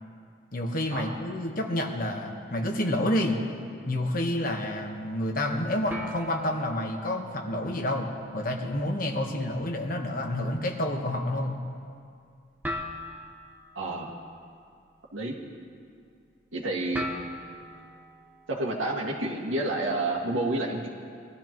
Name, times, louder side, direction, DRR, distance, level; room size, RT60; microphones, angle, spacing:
voice 1, 0.5-3.4 3.9-11.6, left 1 dB, 45° left, 2 dB, 1.2 m, -29 dB
sound 1, 5.9-18.9, equal, 10° right, 1.0 m, -43 dB
voice 2, 13.8-14.1 15.1-15.4 16.5-17.1 18.6-20.9, right 2 dB, 90° right, -2 dB, 1.9 m, -29 dB
21.5 x 13.0 x 3.0 m, 2.3 s
head